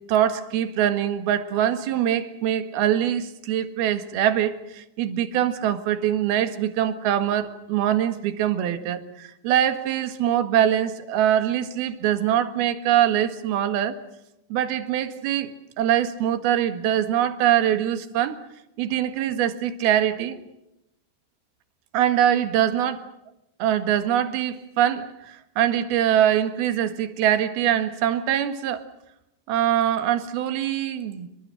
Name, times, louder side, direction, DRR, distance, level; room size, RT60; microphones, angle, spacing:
voice 1, 0.1-14.0 14.5-15.5 15.8-18.4 18.8-20.4 21.9-23.0 23.6-28.8 29.5-31.3, right 10 dB, 65° right, 9 dB, 3.4 m, -23 dB
29.5 x 23.5 x 6.5 m, 0.90 s
omnidirectional pair, 4.9 m